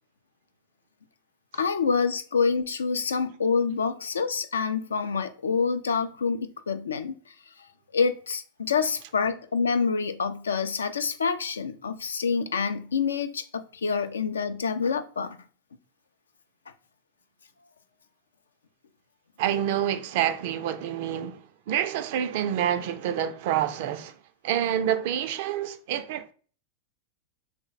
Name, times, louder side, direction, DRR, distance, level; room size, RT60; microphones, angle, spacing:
voice 1, 1.5-7.1 7.9-15.4, left 5 dB, 85° left, 0.3 m, -27 dB
voice 2, 19.4-24.1 24.4-26.3, right 10 dB, 60° right, 0.4 m, -27 dB
2.6 x 2.0 x 3.9 m
hypercardioid pair, 95°, 0 cm